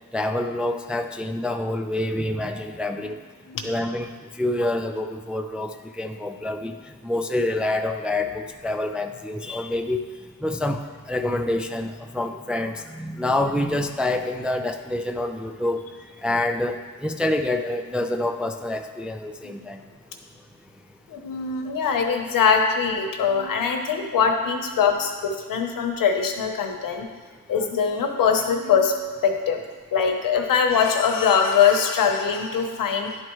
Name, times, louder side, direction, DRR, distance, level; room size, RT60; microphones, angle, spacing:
voice 1, 0.1-3.2 3.6-4.1 4.3-6.8 7.0-10.0 10.4-15.8 16.2-19.8 30.4-30.5, left 1 dB, 5° right, 5 dB, 0.3 m, -27 dB
voice 2, 21.1-27.0 27.5-28.9 29.2-29.6 29.9-33.2, left 6 dB, 75° left, 4 dB, 0.9 m, -22 dB
10.5 x 4.5 x 3.1 m, 1.4 s
cardioid pair, 95°, 34 cm